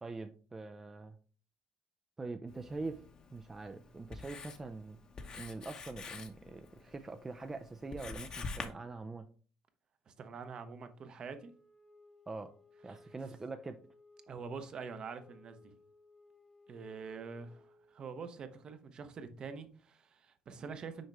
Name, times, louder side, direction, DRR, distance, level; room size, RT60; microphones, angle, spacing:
voice 1, 0.0-1.2 2.2-3.1 3.3-5.0 5.3-9.3 12.3-12.5 12.8-13.8, right 3 dB, 20° right, 0.4 m, -43 dB
Writing, 2.5-8.7, left 4 dB, 40° left, 0.9 m, -47 dB
voice 2, 10.1-11.5 12.9-13.0 14.3-15.7 16.7-21.1, right 5 dB, 45° right, 0.8 m, -45 dB
Wind instrument woodwind instrument, 11.4-18.2, left 2 dB, 15° left, 0.8 m, -62 dB
6.4 x 4.6 x 3.3 m
cardioid pair, 110°, 2 cm